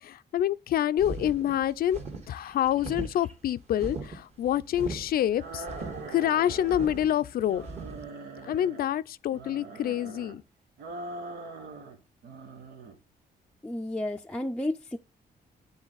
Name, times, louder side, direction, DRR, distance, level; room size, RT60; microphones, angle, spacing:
voice 1, 0.0-2.0 2.3-5.6 6.1-7.7 8.5-10.4, left 11 dB, 65° left, 0.4 m, -27 dB
sound 1, 1.0-8.0, right 2 dB, 40° right, 1.9 m, -40 dB
sound 2, 5.4-7.1 7.4-8.9 9.3-10.4 10.8-12.0 12.2-13.0, right 3 dB, 90° right, 1.5 m, -42 dB
voice 2, 13.6-15.0, left 1 dB, 5° left, 0.4 m, -32 dB
9.6 x 3.9 x 3.9 m
cardioid pair, 105°, 17 cm